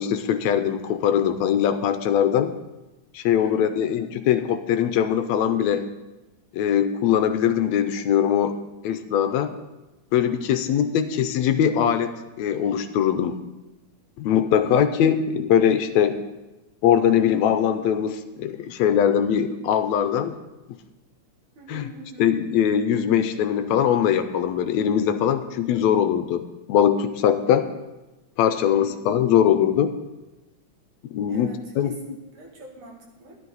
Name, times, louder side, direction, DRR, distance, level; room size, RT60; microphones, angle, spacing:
voice 1, 0.0-2.6 3.1-5.9 6.5-8.6 8.8-9.5 10.1-12.1 12.4-13.4 14.2-16.2 16.8-20.4 21.7-21.9 22.2-27.7 28.4-30.0 31.1-32.2, left 9 dB, 80° left, 10 dB, 1.8 m, -21 dB
voice 2, 3.4-3.8 10.5-11.2 14.6-15.3 21.6-22.3 28.6-29.4 31.3-33.4, right 2 dB, 85° right, 0 dB, 3.4 m, -45 dB
12.5 x 11.5 x 4.0 m, 1.0 s
omnidirectional pair, 3.3 m